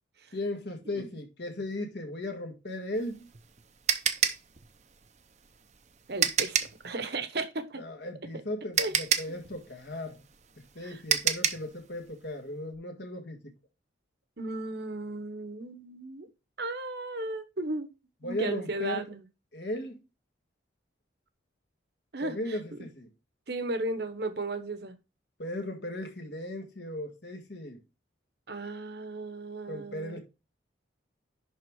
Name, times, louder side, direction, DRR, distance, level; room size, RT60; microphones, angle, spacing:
voice 1, 0.3-3.3 7.8-10.2 10.6-13.5 18.2-19.1 19.5-20.0 22.2-23.1 25.4-27.8 29.7-30.2, left 1 dB, 60° left, 1.8 m, -37 dB
sound 1, 3.0-6.8 8.2-8.3 8.8-11.7, right 8 dB, 35° right, 0.6 m, -28 dB
voice 2, 6.1-7.8 8.3-8.4 8.8-8.9 10.8-11.0 14.4-16.3 16.6-17.9 18.2-19.2 22.1-22.8 23.5-25.0 28.5-30.2, right 2 dB, 55° right, 1.0 m, -35 dB
10.5 x 3.7 x 4.6 m
head